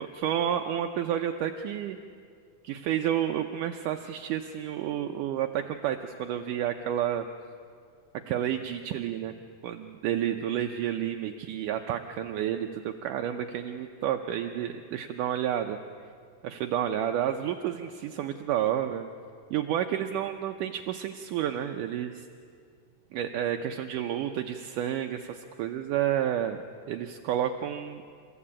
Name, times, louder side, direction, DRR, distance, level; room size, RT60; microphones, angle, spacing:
voice 1, 0.0-2.0 2.6-7.3 8.3-9.3 9.6-15.8 16.4-19.1 19.5-22.3 23.1-26.6 26.9-28.0, right 10 dB, 75° right, 5 dB, 2.1 m, -30 dB
29.0 x 15.0 x 8.7 m, 2.2 s
omnidirectional pair, 4.0 m